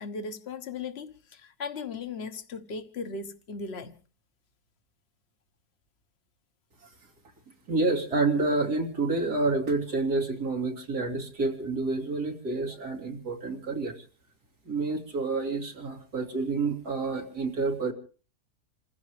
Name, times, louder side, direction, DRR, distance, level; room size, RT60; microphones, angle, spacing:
voice 1, 0.0-3.9, left 4 dB, 45° left, 1.4 m, -37 dB
voice 2, 7.7-14.0 14.7-17.9, right 3 dB, 80° right, 3.5 m, -28 dB
28.5 x 15.5 x 3.2 m
omnidirectional pair, 1.7 m